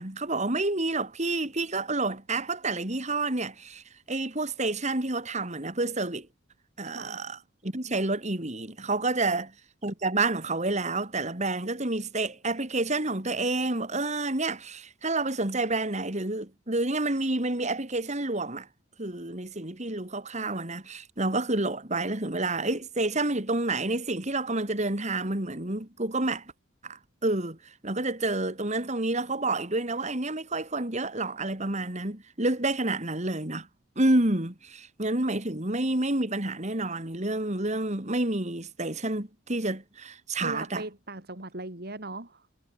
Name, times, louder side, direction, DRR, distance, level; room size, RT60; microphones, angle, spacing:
voice 1, 0.0-3.8 4.1-6.3 6.8-9.5 9.8-18.7 19.0-26.4 26.8-27.6 27.8-33.7 34.0-40.8, right 2 dB, 35° right, 2.9 m, -29 dB
voice 2, 6.8-7.2 9.2-9.4 40.4-42.5, right 2 dB, 50° right, 3.5 m, -39 dB
head